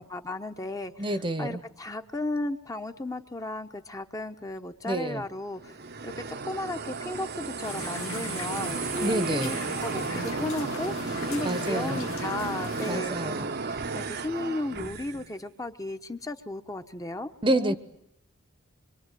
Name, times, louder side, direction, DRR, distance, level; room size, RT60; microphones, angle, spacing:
voice 1, 0.0-1.1 1.4-5.8 6.0-17.8, left 2 dB, 15° left, 6 dB, 1.1 m, -35 dB
voice 2, 1.0-1.6 4.8-5.2 9.0-9.5 11.4-12.0 12.9-13.5 17.4-17.8, right 1 dB, 25° right, 13 dB, 1.1 m, -28 dB
sound 1, 5.6-15.3, right 4 dB, 50° right, 1.0 m, -34 dB
sound 2, 7.6-13.0, left 4 dB, 85° left, 1.1 m, -39 dB
25.0 x 24.5 x 9.3 m, 0.79 s
head